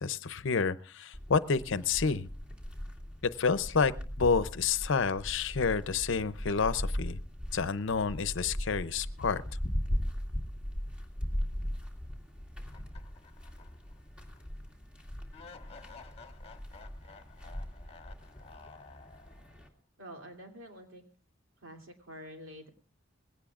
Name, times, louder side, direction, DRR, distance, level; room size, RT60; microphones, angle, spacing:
voice 1, 0.0-2.3 3.2-3.9 4.2-7.2 7.5-9.4, left 5 dB, 65° left, 15 dB, 0.6 m, -29 dB
sound 1, 1.1-19.7, equal, 5° right, 2.3 m, -39 dB
sound 2, 12.7-14.0 14.3-14.4 15.3-19.6, left 4 dB, 30° left, 1.4 m, -53 dB
voice 2, 20.0-21.0 21.6-22.7, equal, 75° right, 3 dB, 2.9 m, -47 dB
20.5 x 17.0 x 2.5 m, 0.37 s
head